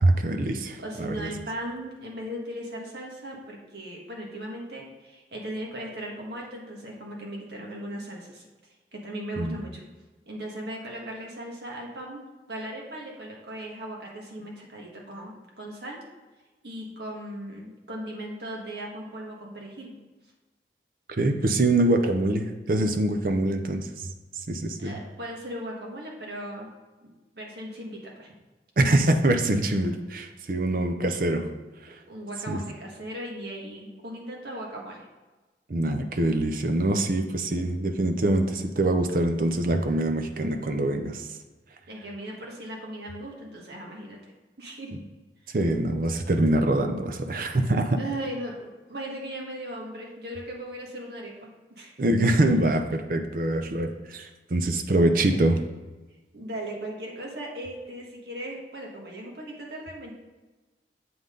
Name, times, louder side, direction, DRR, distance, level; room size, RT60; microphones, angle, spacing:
voice 1, 0.0-1.3 9.4-9.6 21.2-24.1 24.5-25.0 28.8-31.5 32.5-32.6 35.7-41.3 45.5-48.0 52.0-55.6, right 1 dB, 50° right, 6 dB, 0.6 m, -24 dB
voice 2, 0.8-8.4 8.9-9.9 10.2-12.2 12.5-16.0 16.6-19.9 22.2-22.4 24.8-26.7 27.0-28.3 31.9-35.1 37.2-37.3 41.9-44.3 44.6-44.9 45.5-45.6 48.0-51.9 55.2-55.6 56.3-60.1, right 1 dB, 70° right, -2 dB, 1.7 m, -38 dB
7.7 x 5.5 x 3.9 m, 1.2 s
head